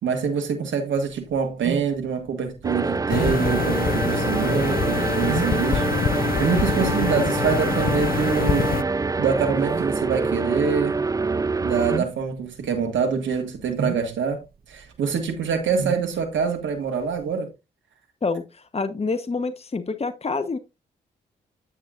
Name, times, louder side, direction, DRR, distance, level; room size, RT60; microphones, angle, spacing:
voice 1, 0.0-5.9 6.4-8.7 9.2-11.0 11.6-14.4 14.7-17.5, right 6 dB, 70° right, 1.7 m, -25 dB
sound 1, 1.0-17.4, right 6 dB, 50° right, 1.1 m, -36 dB
sound 2, 2.6-12.0, right 4 dB, 15° right, 0.4 m, -25 dB
sound 3, 3.1-8.8, left 8 dB, 50° left, 0.6 m, -26 dB
voice 2, 18.2-20.6, left 4 dB, 30° left, 1.0 m, -27 dB
9.6 x 8.0 x 2.5 m
hypercardioid pair, 45°, 20 cm